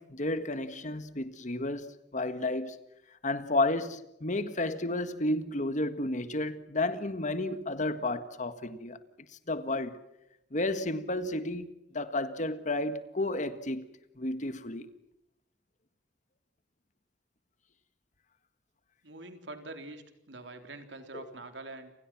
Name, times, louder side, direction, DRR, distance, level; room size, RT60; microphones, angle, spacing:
voice 1, 0.0-2.8 3.2-9.0 9.5-10.0 10.5-14.9, left 2 dB, 45° left, 1.7 m, -32 dB
voice 2, 19.0-21.9, right 2 dB, 80° right, 3.6 m, -45 dB
29.5 x 27.5 x 6.2 m
head